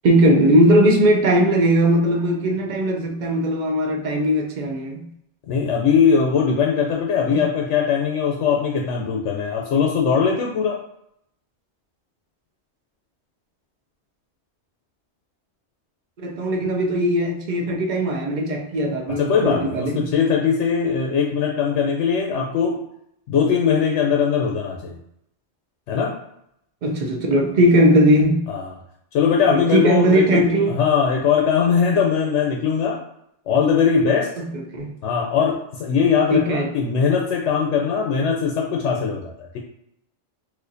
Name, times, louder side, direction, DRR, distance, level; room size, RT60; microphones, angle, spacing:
voice 1, 0.0-5.1 7.3-7.4 16.2-20.0 26.8-28.5 29.5-30.7 34.4-34.9 36.3-36.7, right 1 dB, 50° right, 0.6 m, -19 dB
voice 2, 5.5-10.8 19.1-22.8 23.3-25.0 25.9-26.1 28.5-28.7 29.1-30.4 30.7-33.0 33.5-34.3 35.0-39.6, left 6 dB, 90° left, 0.9 m, -20 dB
4.2 x 2.4 x 2.6 m
omnidirectional pair, 1.2 m